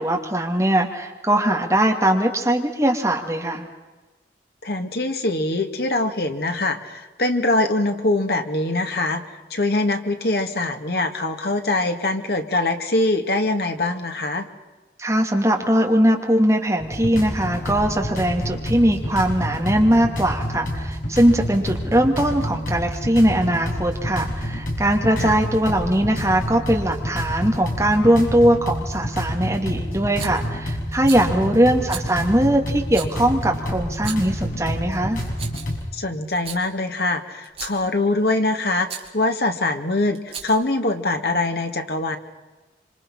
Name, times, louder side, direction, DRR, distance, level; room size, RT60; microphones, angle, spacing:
voice 1, 0.0-3.7 15.0-35.2, right 1 dB, 15° right, 1 dB, 2.7 m, -20 dB
voice 2, 4.6-9.2 9.5-14.5 25.2-25.4 31.3-31.5 35.9-38.9 39.1-42.2, left 2 dB, 65° left, 5 dB, 2.2 m, -23 dB
sound 1, 16.8-35.8, equal, 50° left, 7.0 m, -28 dB
Rattle, 30.2-30.5 31.0-31.3 31.9-32.1 32.9-33.1 33.9-34.4 35.1-35.8 36.3-36.6 37.4-37.9 38.9-39.1 40.1-40.7, right 7 dB, 35° right, 2.9 m, -35 dB
26.5 x 26.0 x 5.8 m, 1.2 s
head